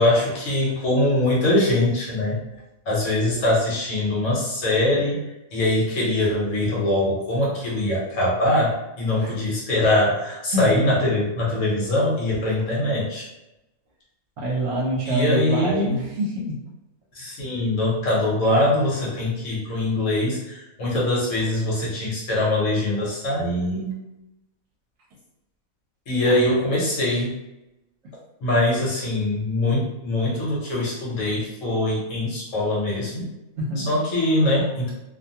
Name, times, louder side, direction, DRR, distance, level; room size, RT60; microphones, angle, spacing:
voice 1, 0.0-2.4 2.9-5.2 5.5-13.3 15.0-16.0 17.1-23.9 26.1-27.3 28.4-33.3 33.8-34.9, left 1 dB, 60° left, -5 dB, 1.2 m, -22 dB
voice 2, 10.5-10.8 14.4-16.6 26.2-26.5 33.6-33.9, right 1 dB, 70° right, -2 dB, 1.0 m, -26 dB
2.6 x 2.2 x 2.7 m, 0.94 s
omnidirectional pair, 1.5 m